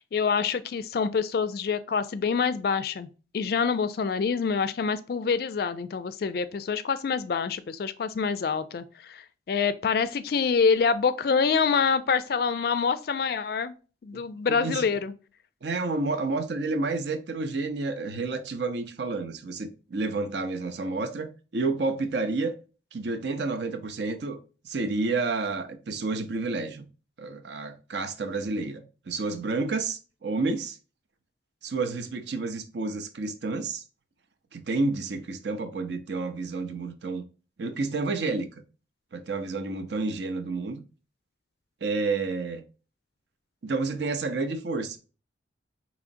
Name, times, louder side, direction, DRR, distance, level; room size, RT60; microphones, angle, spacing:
voice 1, 0.0-3.1 3.3-13.7 14.0-15.1, left 5 dB, 50° left, 0.3 m, -26 dB
voice 2, 14.5-14.8 15.6-22.5 22.9-24.4 24.6-26.8 27.2-30.8 31.6-33.8 34.5-37.2 37.6-38.5 39.1-40.8 41.8-42.6 43.6-45.0, right 3 dB, 65° right, 0.6 m, -30 dB
4.9 x 3.0 x 2.6 m
head